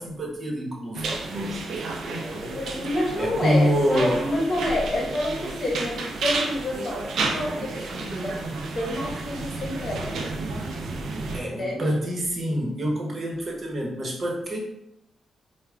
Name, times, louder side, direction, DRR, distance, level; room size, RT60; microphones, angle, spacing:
voice 1, 0.0-2.2 3.2-4.4 11.3-14.6, equal, 50° right, -1 dB, 1.0 m, -26 dB
sound 1, 0.9-11.4, right 3 dB, 75° right, 0.5 m, -31 dB
voice 2, 2.2-10.2 11.4-11.8, left 1 dB, 50° left, -2 dB, 1.0 m, -29 dB
4.7 x 2.2 x 2.3 m, 0.85 s
supercardioid pair, 60°, 0 cm